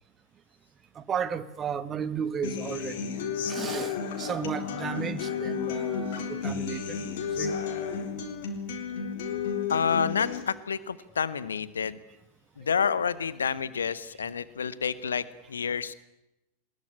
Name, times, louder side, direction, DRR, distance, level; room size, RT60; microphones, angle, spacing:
voice 1, 0.9-3.2 3.5-7.6, right 7 dB, 25° right, 1.5 m, -34 dB
Human voice / Acoustic guitar, 2.4-10.4, left 6 dB, 55° left, 3.9 m, -32 dB
voice 2, 9.7-12.0 12.6-15.9, left 6 dB, 70° left, 1.2 m, -29 dB
22.5 x 20.5 x 10.0 m
figure-of-eight pair, 90°, 0 cm